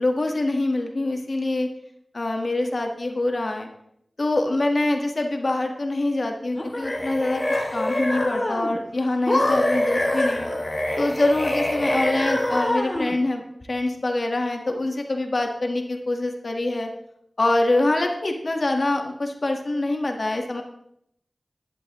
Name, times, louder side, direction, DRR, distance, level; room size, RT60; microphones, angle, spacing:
voice 1, 0.0-1.7 2.1-3.7 4.2-7.4 7.7-10.5 11.0-13.4 13.7-16.9 17.4-20.6, left 2 dB, 65° left, 4 dB, 1.4 m, -25 dB
sound 1, 6.5-8.8 9.3-13.1, left 1 dB, 45° left, 2.5 m, -24 dB
11.5 x 10.5 x 3.0 m, 0.75 s
cardioid pair, 40°, 0 cm